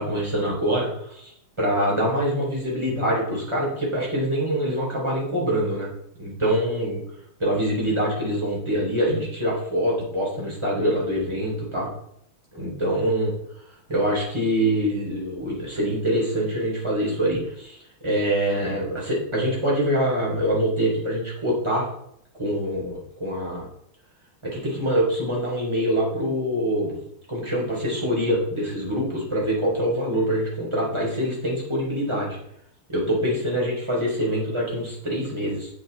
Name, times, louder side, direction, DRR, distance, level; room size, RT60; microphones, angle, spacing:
voice 1, 0.0-5.9 6.2-7.0 7.4-11.9 12.5-13.3 13.9-21.9 22.4-23.7 24.4-27.0 27.3-32.4 32.9-35.7, equal, 10° right, -4 dB, 3.8 m, -25 dB
8.7 x 7.8 x 4.1 m, 0.73 s
omnidirectional pair, 2.4 m